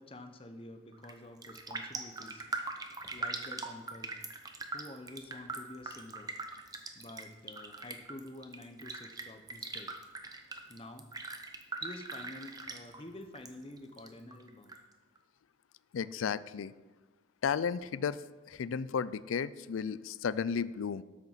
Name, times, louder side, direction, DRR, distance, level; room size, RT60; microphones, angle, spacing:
voice 1, 0.0-2.4 3.1-4.2 4.7-6.3 6.9-10.0 10.7-11.1 11.8-14.7, left 1 dB, 25° left, 8 dB, 0.8 m, -49 dB
Raindrop, 0.9-1.2 1.4-13.5 13.8-14.8 15.2-15.3, right 3 dB, 20° right, 0.7 m, -41 dB
voice 2, 15.9-16.7 17.4-18.2 18.5-21.0, left 6 dB, 80° left, 17 dB, 0.4 m, -33 dB
13.0 x 6.7 x 5.7 m, 1.2 s
head